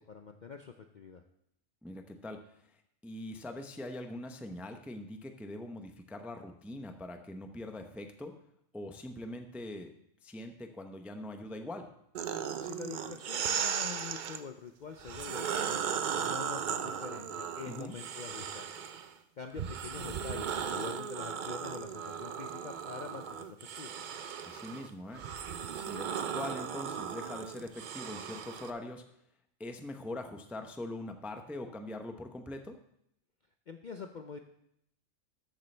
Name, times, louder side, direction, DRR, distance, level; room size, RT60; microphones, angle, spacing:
voice 1, 0.1-1.2 12.6-18.7 19.4-23.9 33.7-34.4, left 6 dB, 55° left, 6 dB, 0.5 m, -45 dB
voice 2, 1.8-8.3 8.7-9.9 10.2-11.9 17.7-18.0 24.4-25.2 25.7-29.0 29.6-32.8, left 1 dB, ahead, 6 dB, 0.4 m, -42 dB
sound 1, 12.1-14.4 15.0-19.1 19.6-28.7, right 7 dB, 55° right, 0.5 m, -37 dB
13.0 x 8.3 x 3.3 m, 0.76 s
omnidirectional pair, 1.4 m